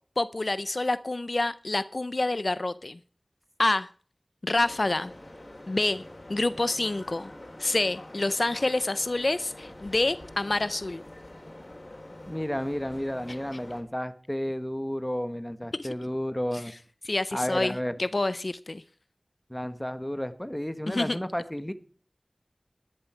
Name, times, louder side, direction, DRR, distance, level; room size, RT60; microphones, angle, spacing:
voice 1, 0.2-3.0 3.6-3.9 4.4-5.1 5.7-6.0 6.3-7.3 7.6-11.0 15.7-15.9 17.1-18.8 20.9-21.2, left 2 dB, 70° left, 15 dB, 0.5 m, -27 dB
sound 1, 4.5-13.8, left 1 dB, 55° left, 3.8 m, -46 dB
voice 2, 12.3-16.7 17.3-17.9 19.5-21.7, equal, 15° left, 10 dB, 1.4 m, -32 dB
12.5 x 11.5 x 4.5 m, 0.42 s
wide cardioid pair, 45°, 0 cm